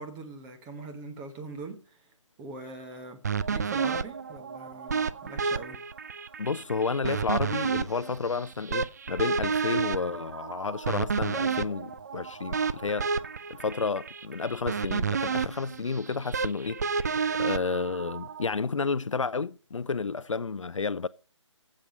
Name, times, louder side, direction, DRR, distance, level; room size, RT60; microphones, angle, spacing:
voice 1, 0.0-2.1 2.4-3.2 3.5-5.8, right 3 dB, 10° right, 1.0 m, -42 dB
sound 1, 3.2-18.5, right 5 dB, 35° right, 0.4 m, -31 dB
voice 2, 6.4-13.1 13.5-16.8 17.3-21.1, left 4 dB, 80° left, 0.5 m, -31 dB
13.5 x 7.6 x 5.2 m
figure-of-eight pair, 155°, 16 cm